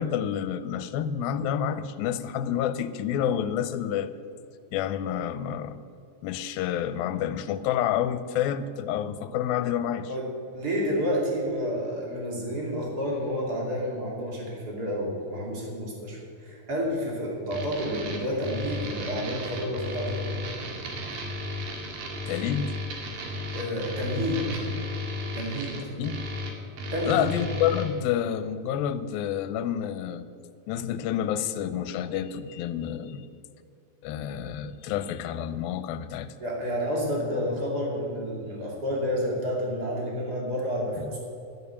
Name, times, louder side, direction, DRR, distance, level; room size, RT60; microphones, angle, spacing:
voice 1, 0.0-4.1 4.7-5.8 6.2-10.1 22.3-22.7 26.0-26.2 27.1-30.2 30.7-33.3 34.0-36.3 41.0-41.1, left 9 dB, 85° left, 2.4 m, -29 dB
voice 2, 10.5-20.4 23.5-24.5 25.3-25.8 26.9-27.3 36.4-41.2, equal, 30° right, 2.8 m, -30 dB
sound 1, 17.5-27.9, left 1 dB, 75° right, 3.5 m, -34 dB
11.5 x 10.5 x 7.0 m
omnidirectional pair, 4.2 m